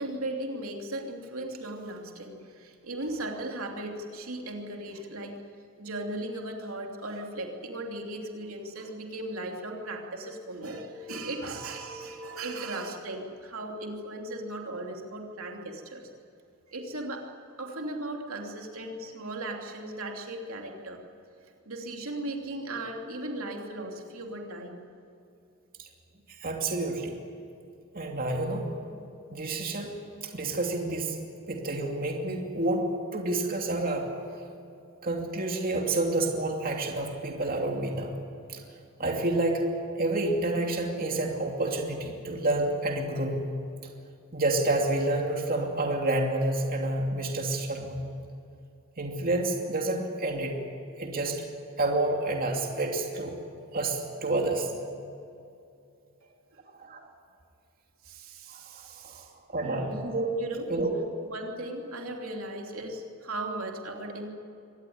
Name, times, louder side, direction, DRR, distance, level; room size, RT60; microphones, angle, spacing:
voice 1, 0.0-5.4 5.8-16.0 16.7-17.3 17.6-21.0 21.6-24.8 56.2-56.6 58.0-59.3 59.6-60.0 60.3-60.7 61.3-64.3, right 1 dB, 80° right, 1 dB, 3.1 m, -37 dB
voice 2, 26.4-27.2 27.9-28.7 29.3-29.9 30.2-31.2 31.5-32.9 33.1-34.1 35.0-38.1 38.5-38.6 39.0-39.6 39.9-43.5 44.3-48.0 49.0-50.6 51.0-51.4 51.8-53.4 53.7-54.7 56.7-57.0 59.0-60.3 60.7-60.9, right 2 dB, 45° right, 1 dB, 2.7 m, -29 dB
24.5 x 19.0 x 9.6 m, 2.6 s
head